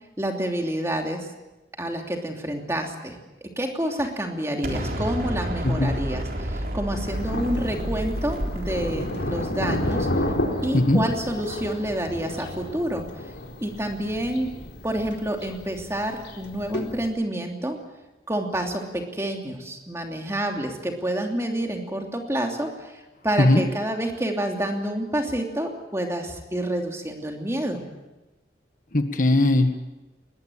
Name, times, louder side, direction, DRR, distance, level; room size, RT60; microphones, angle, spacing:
voice 1, 0.2-1.3 1.8-10.1 10.6-13.1 13.6-14.5 14.8-17.8 18.3-27.8, right 1 dB, 15° right, 2 dB, 2.9 m, -28 dB
Explosion, 4.6-10.6, right 1 dB, 55° right, 3.6 m, -31 dB
Thunder, 7.1-17.1, left 1 dB, 90° left, 4.1 m, -31 dB
voice 2, 28.9-29.8, left 1 dB, 50° left, 7 dB, 1.6 m, -19 dB
22.0 x 19.5 x 8.7 m, 1.1 s
head